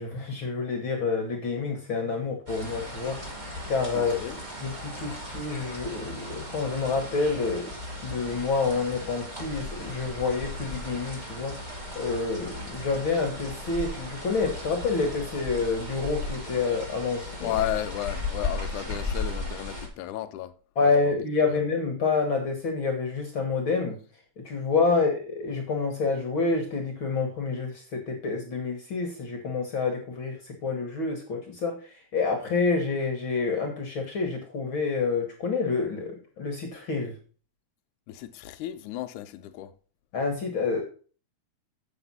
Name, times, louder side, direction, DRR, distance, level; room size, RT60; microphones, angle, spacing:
voice 1, 0.0-3.2 3.7-4.1 4.6-7.7 8.0-11.6 11.9-17.5 20.7-24.0 24.4-37.1 40.1-40.8, left 4 dB, 50° left, 1.8 m, -28 dB
sound 1, 2.5-19.9, left 2 dB, 15° right, 2.3 m, -36 dB
voice 2, 3.9-4.4 17.4-20.5 20.8-21.1 24.9-25.0 38.1-39.7, left 13 dB, 80° left, 2.1 m, -33 dB
8.1 x 6.8 x 5.5 m
omnidirectional pair, 3.5 m